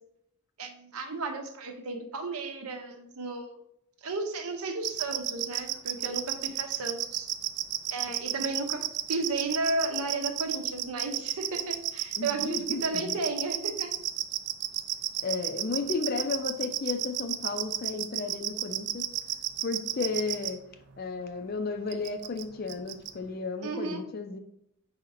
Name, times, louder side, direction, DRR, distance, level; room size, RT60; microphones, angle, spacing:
voice 1, 0.6-3.5 4.0-7.3 7.9-13.9 23.6-24.0, right 3 dB, 80° right, 5 dB, 0.7 m, -34 dB
sound 1, 4.8-20.5 21.9-22.4 22.7-23.1, right 14 dB, 50° right, 0.3 m, -31 dB
voice 2, 12.2-13.2 15.2-19.1 19.6-20.6 21.0-24.4, left 4 dB, 45° left, 7 dB, 0.4 m, -33 dB
4.8 x 4.3 x 2.6 m, 0.76 s
head